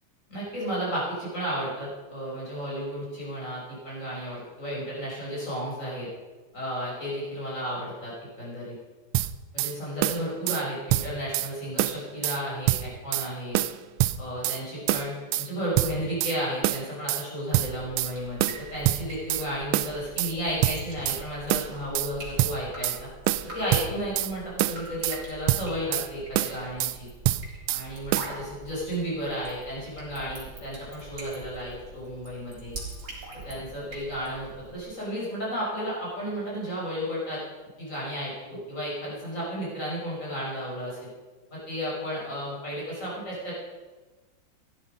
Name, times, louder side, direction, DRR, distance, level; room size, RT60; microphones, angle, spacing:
voice 1, 0.3-6.1 6.5-8.8 9.5-13.6 14.2-23.1 23.5-27.1 27.7-32.7 33.4-37.4 37.8-41.1 41.5-43.5, equal, 35° left, -6 dB, 6.1 m, -33 dB
sound 1, 9.1-9.7 10.0-10.6 10.9-11.5 11.8-12.4 12.7-13.3 13.5-14.6 14.9-15.5 15.8-16.4 16.6-17.2 17.5-18.1 18.4-19.5 19.7-20.3 20.6-21.2 21.5-22.1 22.4-23.0 23.3-24.3 24.6-25.2 25.5-26.1 26.3-27.0 27.2-27.8 28.1-28.3, right 15 dB, 85° right, 1.4 m, -26 dB
Drip, 17.8-34.8, right 2 dB, 50° right, 4.6 m, -44 dB
15.5 x 11.5 x 5.5 m, 1.3 s
omnidirectional pair, 2.2 m